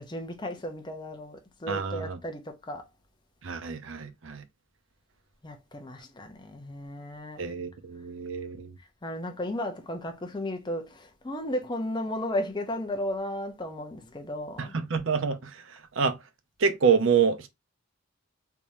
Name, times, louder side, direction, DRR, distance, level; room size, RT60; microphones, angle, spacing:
voice 1, 0.0-2.8 5.4-7.4 9.0-14.7, left 1 dB, 20° left, 0.6 m, -34 dB
voice 2, 1.7-2.2 3.4-4.4 7.4-8.7 14.6-15.4 16.0-16.2 16.6-17.5, right 6 dB, 60° right, 0.6 m, -26 dB
3.5 x 3.0 x 2.6 m
head